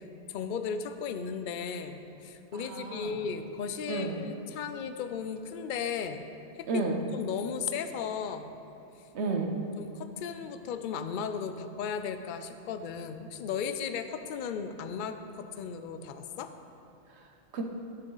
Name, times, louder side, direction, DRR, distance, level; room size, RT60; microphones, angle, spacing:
voice 1, 0.3-6.2 6.6-6.7 7.1-8.5 9.8-16.5, left 6 dB, 60° left, 9 dB, 0.5 m, -35 dB
voice 2, 2.5-3.2 3.9-4.2 6.7-7.0 9.1-9.6 17.1-17.6, right 3 dB, 70° right, 3 dB, 1.1 m, -32 dB
11.5 x 6.3 x 3.9 m, 2.8 s
omnidirectional pair, 1.2 m